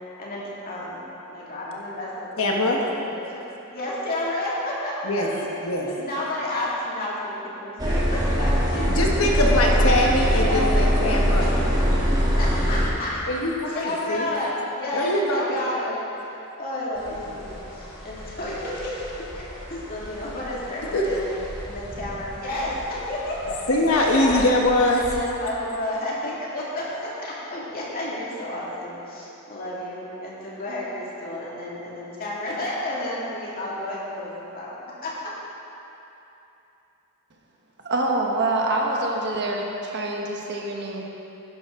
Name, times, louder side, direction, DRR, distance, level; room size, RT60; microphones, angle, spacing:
voice 1, 0.2-1.0 1.3-3.2 3.7-5.5 5.9-9.0 9.5-9.7 10.4-10.9 11.4-11.5 12.4-13.2 13.7-16.0 16.6-21.2 21.6-24.5 24.9-35.3, left 1 dB, 40° left, -6 dB, 2.3 m, -31 dB
voice 2, 2.4-2.8 5.0-5.3 5.6-5.9 8.9-11.5 13.3-14.3 14.9-15.5 20.9-21.2 23.7-25.0, left 1 dB, 65° left, 0 dB, 1.2 m, -22 dB
sound 1, 7.8-12.9, equal, 20° right, 1.4 m, -21 dB
sound 2, 16.9-25.2, equal, 20° left, 2.1 m, -40 dB
voice 3, 37.8-41.1, right 2 dB, 50° right, 0 dB, 1.2 m, -25 dB
11.0 x 11.0 x 3.7 m, 3.0 s
head